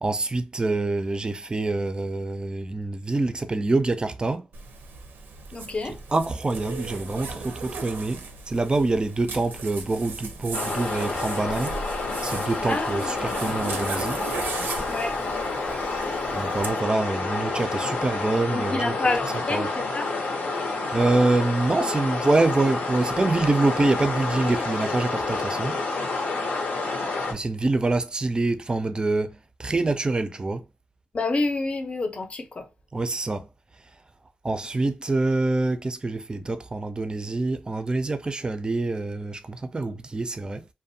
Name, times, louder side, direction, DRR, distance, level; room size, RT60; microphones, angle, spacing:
voice 1, 0.0-4.4 6.1-11.8 12.2-14.2 16.3-18.9 19.5-19.7 20.9-25.8 27.3-30.6 32.9-33.5 34.4-40.6, right 2 dB, 25° right, 0.4 m, -25 dB
Zipper (clothing), 4.5-16.7, right 4 dB, 80° right, 0.5 m, -37 dB
voice 2, 5.5-6.0 12.7-13.1 14.9-15.1 18.5-20.1 31.1-32.7, left 2 dB, 40° left, 0.6 m, -28 dB
sound 1, 10.5-27.3, left 3 dB, 80° left, 0.7 m, -29 dB
2.4 x 2.1 x 2.7 m
cardioid pair, 65°, 3 cm